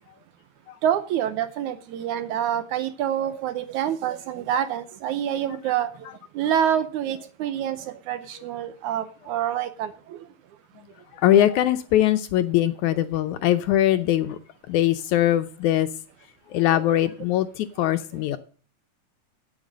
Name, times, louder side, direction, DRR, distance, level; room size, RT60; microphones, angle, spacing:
voice 1, 0.8-5.9 6.4-10.2 16.7-16.8 17.8-17.9, right 10 dB, 75° right, 12 dB, 2.0 m, -27 dB
voice 2, 11.1-14.4 14.7-15.9 16.5-18.4, left 12 dB, 75° left, 10 dB, 1.9 m, -21 dB
9.0 x 8.9 x 7.4 m, 0.40 s
omnidirectional pair, 3.9 m